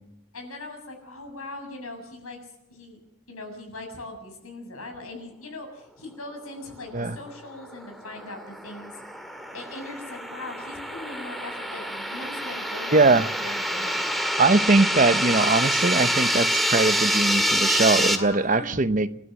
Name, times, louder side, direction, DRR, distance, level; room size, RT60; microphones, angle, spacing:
voice 1, 0.3-3.0 3.3-8.9 9.5-14.2 18.2-18.7, left 2 dB, 90° left, 7.1 m, -40 dB
sound 1, 7.7-18.2, equal, ahead, 2.0 m, -26 dB
voice 2, 12.9-13.3 14.4-19.1, right 3 dB, 35° right, 0.9 m, -21 dB
29.0 x 12.5 x 7.8 m
head